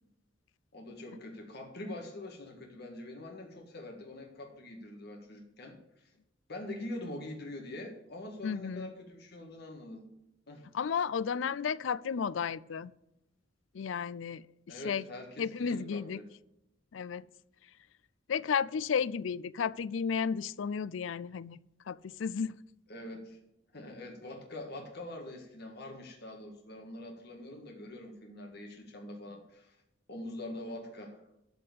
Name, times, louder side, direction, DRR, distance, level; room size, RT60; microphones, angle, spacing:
voice 1, 0.7-6.1 6.5-10.1 10.5-10.7 14.7-16.3 22.9-23.4 23.7-29.8 30.1-31.2, left 1 dB, 55° left, 2 dB, 1.8 m, -44 dB
voice 2, 8.4-8.9 10.7-12.9 13.7-15.0 15.4-16.2 16.9-17.2 18.3-21.6 21.9-22.5, left 6 dB, 75° left, 18 dB, 0.4 m, -33 dB
13.0 x 4.3 x 8.2 m, 0.88 s
head